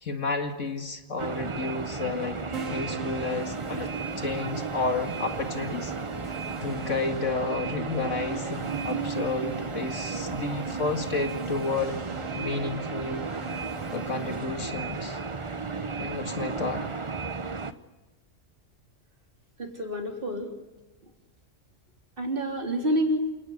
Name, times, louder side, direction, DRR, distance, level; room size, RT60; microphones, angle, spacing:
voice 1, 0.0-2.4 2.6-3.9 4.2-5.9 6.6-11.9 12.4-13.2 13.9-15.2 16.0-16.9, left 3 dB, 70° left, 5 dB, 2.4 m, -31 dB
sound 1, 1.2-17.7, right 4 dB, 25° right, 0.9 m, -34 dB
Keyboard (musical), 2.5-14.4, right 5 dB, 85° right, 2.6 m, -43 dB
voice 2, 19.6-20.5 22.2-23.2, equal, 45° right, 2 dB, 3.8 m, -28 dB
29.0 x 19.0 x 6.6 m, 1.1 s
omnidirectional pair, 1.3 m